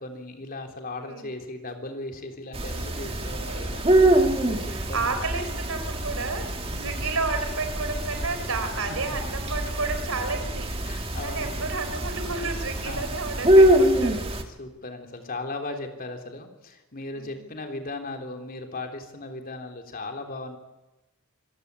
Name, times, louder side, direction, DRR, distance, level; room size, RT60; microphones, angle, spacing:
voice 1, 0.0-3.9 4.7-5.4 6.7-7.1 10.8-11.7 12.8-13.2 14.4-20.6, left 2 dB, 40° left, 4 dB, 3.6 m, -37 dB
voice 2, 1.0-1.3 3.4-3.7 4.6-6.5 6.8-10.7 11.2-14.2 17.1-17.4, right 3 dB, 70° right, 8 dB, 4.2 m, -31 dB
sound 1, 2.5-14.4, right 1 dB, 25° right, 2.1 m, -24 dB
26.0 x 15.5 x 9.9 m, 1.1 s
head